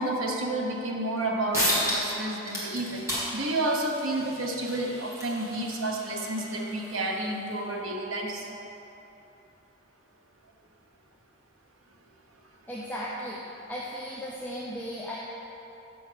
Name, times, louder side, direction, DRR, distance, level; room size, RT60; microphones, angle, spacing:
voice 1, 0.0-8.5, right 1 dB, 70° right, 0 dB, 1.1 m, -30 dB
sound 1, 1.2-1.3 1.5-2.2 2.4-7.6, equal, 15° right, 1.9 m, -33 dB
voice 2, 12.7-13.4 13.7-15.2, equal, 10° left, -6 dB, 0.6 m, -36 dB
7.1 x 6.2 x 5.7 m, 3.0 s
head